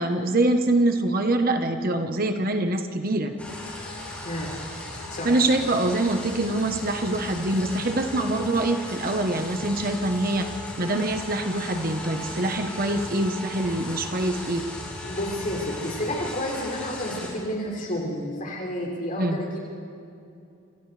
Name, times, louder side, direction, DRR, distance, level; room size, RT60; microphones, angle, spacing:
voice 1, 0.0-3.3 5.2-10.5 10.8-14.6 19.2-19.4, right 2 dB, 45° right, 6 dB, 1.1 m, -24 dB
sound 1, 3.4-17.3, left 1 dB, 5° left, 6.9 m, -37 dB
voice 2, 15.0-19.6, left 1 dB, 40° left, -3 dB, 6.2 m, -30 dB
29.0 x 27.0 x 3.4 m, 2.6 s
head